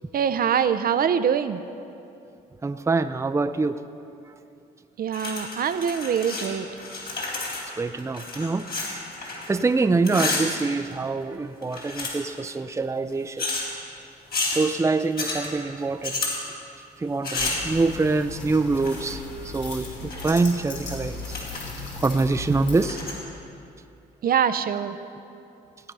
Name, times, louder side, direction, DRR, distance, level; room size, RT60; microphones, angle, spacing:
voice 1, 0.1-1.6 5.0-6.7 24.2-25.0, right 8 dB, 55° right, 11 dB, 0.6 m, -24 dB
voice 2, 2.6-3.8 7.8-8.7 9.5-13.5 14.5-16.2 17.0-21.3 22.0-23.0, right 3 dB, 15° right, 10 dB, 0.5 m, -25 dB
sound 1, 5.1-6.5 6.7-9.7 9.9-11.2 11.6-12.4 13.4-13.7 14.3-14.6 15.2-15.5 16.0-16.4 17.2-17.7 18.7-19.1 19.8-20.5 20.8-20.9 21.2-21.6 22.0-22.1 22.7-23.2, left 3 dB, 60° left, 3.9 m, -31 dB
sound 2, 17.4-22.9, left 3 dB, 75° left, 2.7 m, -37 dB
17.0 x 8.9 x 5.5 m, 2.6 s
supercardioid pair, 65°, 19 cm